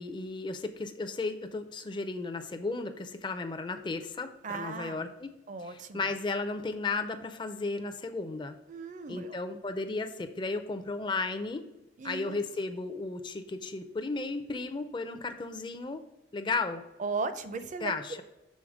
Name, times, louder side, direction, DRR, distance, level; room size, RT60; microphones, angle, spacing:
voice 1, 0.0-5.3 5.6-8.6 9.1-11.6 12.0-16.0 16.3-16.8 17.8-18.2, left 3 dB, 25° left, 7 dB, 0.4 m, -34 dB
voice 2, 4.4-5.1 5.5-6.1 8.7-9.4 12.0-12.4 17.0-18.2, right 4 dB, 40° right, 10 dB, 0.5 m, -37 dB
6.4 x 3.8 x 4.8 m, 0.98 s
head